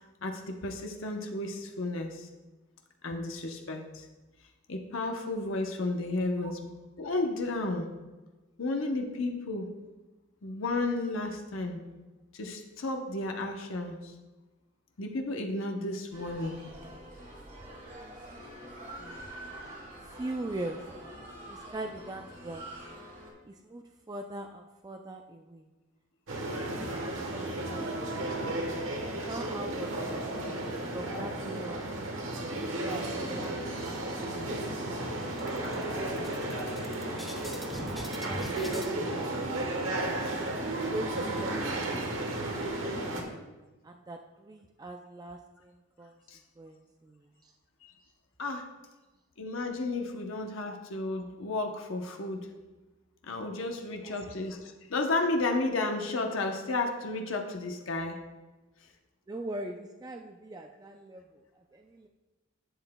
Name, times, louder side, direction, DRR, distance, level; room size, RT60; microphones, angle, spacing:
voice 1, 0.2-2.3 3.0-4.1 4.7-6.7 7.0-7.9 8.6-9.7 10.4-11.8 12.3-14.1 15.0-16.6 46.3-46.4 47.8-47.9 48.4-48.7 49.4-52.5 53.2-58.2, left 2 dB, 80° left, 3 dB, 0.8 m, -32 dB
sound 1, 16.1-23.3, right 1 dB, 40° right, 2.1 m, -46 dB
voice 2, 20.0-20.8 21.5-22.7 23.4-25.7 26.3-26.4 26.7-27.0 27.3-27.8 29.3-30.2 30.9-31.9 32.6-33.5 33.8-34.2 34.8-35.1 35.7-37.0 37.5-39.5 40.9-43.0 43.8-46.2 46.6-47.5 53.6-53.7 54.0-54.4 59.3-62.1, right 1 dB, 20° right, 4 dB, 0.3 m, -42 dB
sound 2, 26.3-43.2, right 1 dB, 80° right, 1.2 m, -33 dB
sound 3, 33.6-34.3 34.7-34.8 35.1-38.9, equal, ahead, 0.9 m, -43 dB
11.0 x 7.8 x 2.2 m, 1.2 s
head